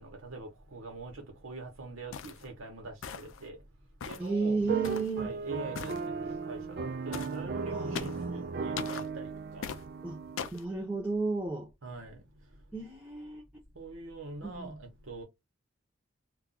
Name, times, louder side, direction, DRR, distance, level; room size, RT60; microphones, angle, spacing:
voice 1, 0.0-3.6 4.1-4.6 5.2-9.7 11.8-12.2 13.8-15.2, right 3 dB, 75° right, 0.9 m, -44 dB
sound 1, 2.1-2.4 3.0-3.4 4.0-4.3 4.8-5.1 5.7-6.0 7.1-7.4 7.9-8.2 8.8-9.1 9.6-9.8 10.4-10.6, left 7 dB, 70° left, 0.4 m, -39 dB
voice 2, 4.2-5.3 7.6-8.5 10.0-10.2 10.5-11.7 12.7-13.4 14.4-14.8, right 4 dB, 5° right, 0.7 m, -33 dB
sound 2, 4.6-10.5, right 5 dB, 45° right, 0.3 m, -36 dB
2.3 x 2.3 x 3.8 m
head